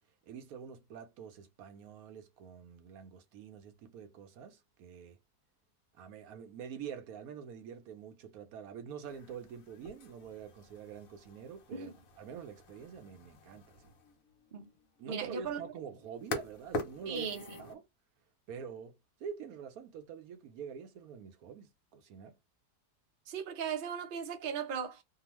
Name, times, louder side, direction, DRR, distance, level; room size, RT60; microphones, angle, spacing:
voice 1, 0.3-5.2 5.9-13.9 15.0-17.3 17.6-17.9 18.5-22.4, right 7 dB, 70° right, 1.0 m, -46 dB
sound 1, 9.0-17.7, left 2 dB, 65° left, 1.1 m, -45 dB
voice 2, 15.1-15.6 17.1-17.5 23.3-25.0, right 6 dB, 50° right, 0.6 m, -37 dB
2.8 x 2.4 x 3.0 m
omnidirectional pair, 1.7 m